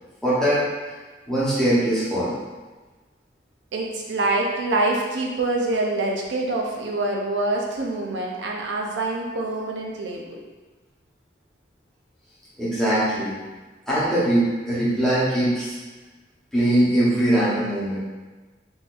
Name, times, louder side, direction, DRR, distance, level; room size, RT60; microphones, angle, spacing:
voice 1, 0.2-0.7 1.3-2.3 12.6-13.4 13.9-15.8 16.5-18.0, right 1 dB, 5° left, -10 dB, 0.9 m, -21 dB
voice 2, 3.7-10.4, right 2 dB, 85° right, -1 dB, 0.5 m, -25 dB
3.8 x 2.6 x 2.5 m, 1.3 s
head